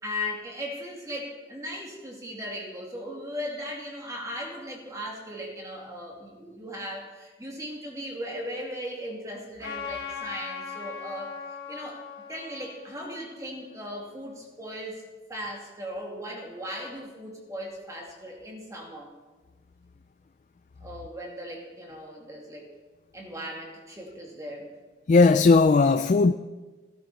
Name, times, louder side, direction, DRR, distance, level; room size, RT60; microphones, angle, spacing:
voice 1, 0.0-11.3 11.7-12.0 12.3-15.0 15.3-19.1 20.8-22.7 23.1-24.7, equal, 20° right, 2.4 m, -37 dB
Trumpet, 9.6-14.3, left 6 dB, 90° left, 3.5 m, -40 dB
voice 2, 25.1-26.3, left 4 dB, 40° left, 0.3 m, -17 dB
16.0 x 12.5 x 4.1 m
head